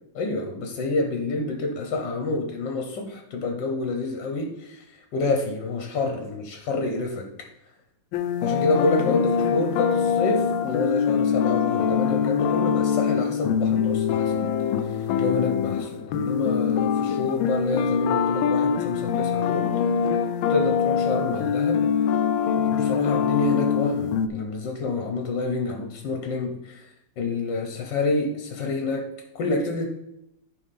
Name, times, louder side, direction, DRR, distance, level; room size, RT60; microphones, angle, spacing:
voice 1, 0.2-4.8 5.1-7.5 8.4-14.4 15.2-19.7 20.5-21.9 22.6-26.8 27.2-29.1 29.4-29.9, left 3 dB, 70° left, 3 dB, 1.6 m, -28 dB
sound 1, 8.1-24.3, left 7 dB, 90° left, 1.4 m, -23 dB
11.0 x 5.2 x 4.2 m, 0.83 s
omnidirectional pair, 2.1 m